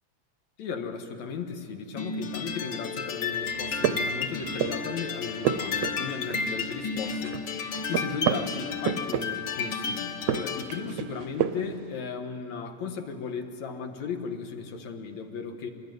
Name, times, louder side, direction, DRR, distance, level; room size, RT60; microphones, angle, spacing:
voice 1, 0.6-15.7, left 6 dB, 75° left, 6 dB, 2.8 m, -36 dB
sound 1, 2.0-10.8, left 5 dB, 50° left, 1.3 m, -32 dB
sound 2, 3.5-4.9 5.2-6.8 7.1-9.6 10.1-11.8, right 10 dB, 70° right, 1.6 m, -31 dB
25.0 x 20.0 x 9.3 m, 2.5 s
omnidirectional pair, 3.3 m